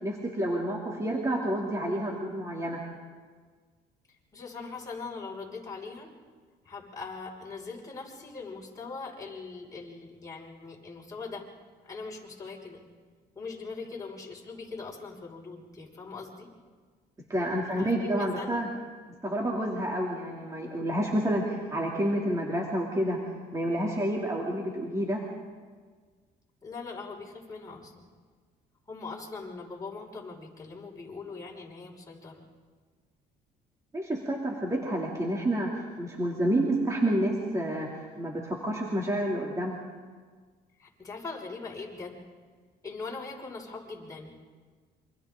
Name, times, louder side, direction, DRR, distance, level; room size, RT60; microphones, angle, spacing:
voice 1, 0.0-2.8 17.3-18.7 19.2-23.2 23.5-25.2 33.9-39.8, right 1 dB, 20° right, -2 dB, 3.0 m, -29 dB
voice 2, 4.3-6.1 6.6-11.5 11.8-12.8 13.3-16.5 17.3-18.6 26.6-28.1 28.9-32.4 40.8-42.2 42.8-44.4, left 4 dB, 20° left, -3 dB, 5.9 m, -41 dB
28.0 x 25.5 x 3.9 m, 1.5 s
cardioid pair, 110°, 17 cm